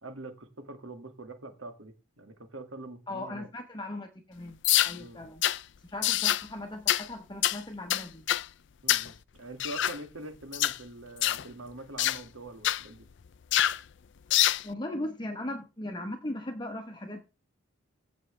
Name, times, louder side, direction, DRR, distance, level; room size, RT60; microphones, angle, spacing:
voice 1, 0.0-3.5 5.0-5.2 8.8-13.1, right 2 dB, 70° right, 6 dB, 2.2 m, -44 dB
voice 2, 3.1-4.6 4.8-5.4 5.8-8.2 14.6-17.2, left 1 dB, 20° left, 4 dB, 1.0 m, -38 dB
sound 1, 4.6-5.0 5.4-5.6 6.0-6.4 6.9-7.1 7.4-7.6 7.9-8.5 8.9-9.1 9.6-10.0 10.5-10.8 11.2-11.4 12.0-12.2 12.6-12.8 13.5-13.8 14.3-14.6, left 13 dB, 55° left, 0.4 m, -25 dB
16.0 x 6.3 x 3.3 m, 0.29 s
head